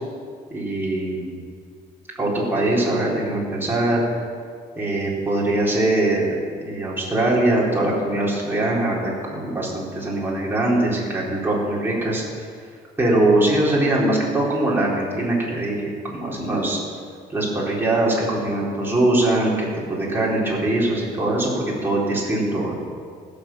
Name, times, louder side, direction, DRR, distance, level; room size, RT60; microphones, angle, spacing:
voice 1, 0.5-1.3 2.2-4.0 4.8-6.3 6.6-12.2 13.0-16.8 17.3-22.7, right 1 dB, 15° right, -5 dB, 3.9 m, -22 dB
16.0 x 7.0 x 7.3 m, 2.1 s
cardioid pair, 110°, 17 cm